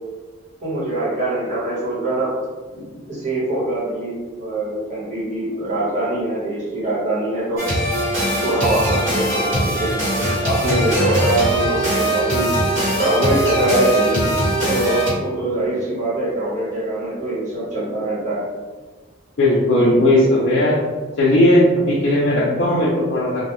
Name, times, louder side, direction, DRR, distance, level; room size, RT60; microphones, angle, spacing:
voice 1, 0.6-2.4 3.1-7.7 8.4-10.0 10.4-12.5 13.0-14.3 14.6-18.5 22.2-22.4, right 1 dB, 35° right, -9 dB, 1.0 m, -23 dB
sound 1, 7.6-15.1, right 1 dB, 60° right, 1.2 m, -21 dB
voice 2, 19.4-20.8 21.2-23.4, left 1 dB, 55° left, -7 dB, 0.4 m, -16 dB
2.2 x 2.2 x 2.9 m, 1.4 s
head